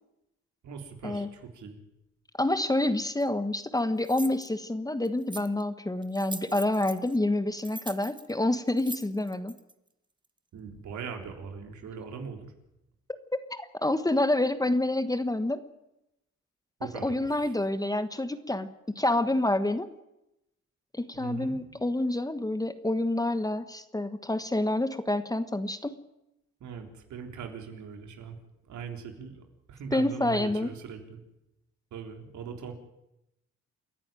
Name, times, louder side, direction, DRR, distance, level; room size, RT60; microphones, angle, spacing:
voice 1, 0.6-1.8 10.5-12.5 16.8-17.5 21.1-21.6 26.6-28.4 28.7-31.2 31.9-32.7, right 6 dB, 70° right, 4 dB, 3.7 m, -41 dB
voice 2, 2.4-9.5 13.5-15.6 17.0-18.7 18.9-19.9 20.9-26.0 29.9-30.7, left 1 dB, 10° left, 11 dB, 1.3 m, -28 dB
sound 1, 3.2-3.3 4.0-4.5 5.0-5.6 6.0-7.2 7.6-9.7, right 2 dB, 15° right, 1.4 m, -42 dB
29.0 x 11.0 x 9.1 m, 0.89 s
cardioid pair, 90°, 30 cm